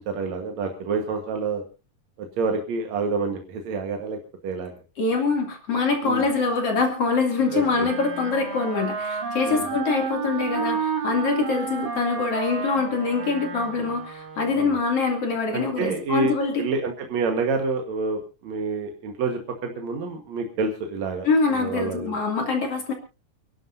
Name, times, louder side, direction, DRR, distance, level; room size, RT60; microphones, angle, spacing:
voice 1, 0.0-1.6 2.4-4.7 6.0-6.2 7.5-7.9 9.5-9.6 13.8-13.9 14.5-14.7 15.5-22.1, right 4 dB, 60° right, 3 dB, 2.5 m, -28 dB
voice 2, 5.0-16.7 21.2-22.9, left 4 dB, 45° left, 2 dB, 3.5 m, -24 dB
Wind instrument woodwind instrument, 7.4-14.7, right 5 dB, 85° right, 5.6 m, -31 dB
29.0 x 12.0 x 2.7 m, 0.31 s
omnidirectional pair, 3.8 m